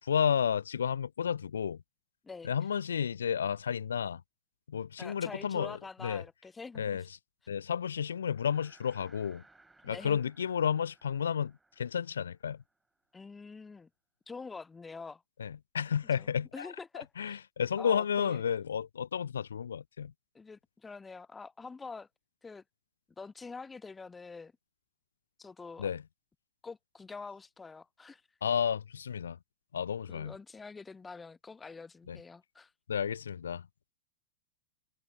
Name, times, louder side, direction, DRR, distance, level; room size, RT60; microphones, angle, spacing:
voice 1, 0.0-1.8 2.4-4.2 4.7-5.8 6.0-6.2 6.8-7.0 7.5-9.4 9.8-12.6 15.4-16.7 17.0-20.1 25.8-26.0 28.4-29.4 29.7-30.3 32.1-32.2 32.9-33.7, left 7 dB, 70° left, 0.4 m, -32 dB
voice 2, 5.0-7.0 9.9-10.2 13.1-13.9 14.3-15.2 16.2-17.4 17.8-18.4 20.3-22.1 22.4-22.6 23.2-24.5 25.4-25.9 26.6-28.2 30.1-32.7, left 4 dB, 15° left, 0.6 m, -46 dB
sound 1, 8.0-13.5, right 2 dB, 10° right, 5.8 m, -64 dB
figure-of-eight pair, 90°, 0 cm